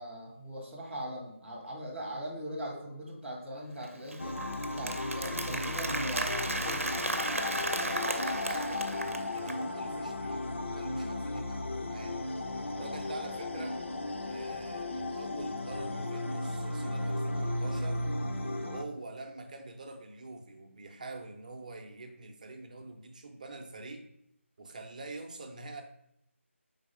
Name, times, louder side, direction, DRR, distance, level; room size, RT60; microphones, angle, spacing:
voice 1, 0.0-4.4 4.7-6.9, right 1 dB, ahead, -12 dB, 0.3 m, -40 dB
Applause, 3.8-9.6, right 2 dB, 80° right, 0.7 m, -35 dB
sound 1, 4.2-18.8, left 2 dB, 60° left, 0.6 m, -35 dB
voice 2, 7.7-12.2 12.6-13.8 14.2-18.0 18.6-24.1 24.6-25.8, right 2 dB, 35° right, 5 dB, 0.6 m, -45 dB
4.7 x 4.0 x 4.9 m, 0.77 s
figure-of-eight pair, 165°, 7 cm